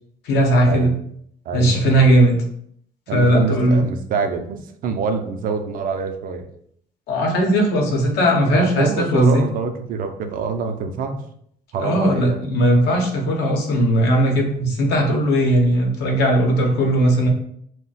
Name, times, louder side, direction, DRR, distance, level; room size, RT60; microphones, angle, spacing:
voice 1, 0.3-0.9 1.5-2.4 3.1-3.8 7.1-9.4 11.8-17.3, right 1 dB, 80° left, 1 dB, 0.8 m, -17 dB
voice 2, 1.5-2.1 3.1-6.5 8.5-11.2 11.7-12.6, right 5 dB, 55° right, 7 dB, 0.4 m, -26 dB
2.3 x 2.1 x 3.9 m, 0.68 s
cardioid pair, 110°, 17 cm